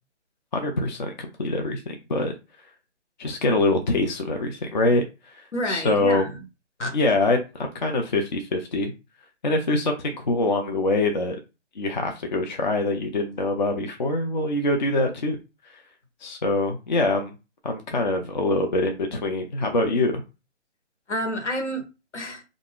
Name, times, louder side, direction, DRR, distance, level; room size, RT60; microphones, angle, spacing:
voice 1, 0.5-2.3 3.2-6.3 6.9-8.9 9.4-11.4 11.8-15.4 16.2-17.3 17.6-20.2, left 2 dB, 40° left, 0.4 m, -24 dB
voice 2, 5.5-6.3 6.8-6.9 21.1-21.8 22.1-22.4, equal, 75° left, 1.2 m, -29 dB
2.4 x 2.0 x 3.5 m
figure-of-eight pair, 150°, 36 cm